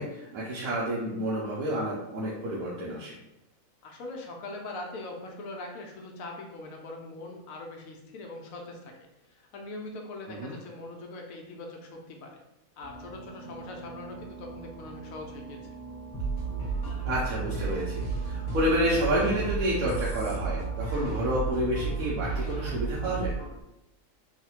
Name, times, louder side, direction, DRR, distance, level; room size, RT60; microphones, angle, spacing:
voice 1, 0.0-3.1 10.4-10.5 17.0-23.3, equal, 85° right, -6 dB, 1.1 m, -29 dB
voice 2, 3.8-8.9 9.3-12.4 12.8-15.6, left 2 dB, 80° left, 1 dB, 1.0 m, -41 dB
sound 1, 12.8-21.3, right 3 dB, 50° right, 0.6 m, -45 dB
sound 2, 16.1-23.6, right 4 dB, 35° left, 1.1 m, -32 dB
3.1 x 2.1 x 2.9 m, 0.88 s
omnidirectional pair, 1.5 m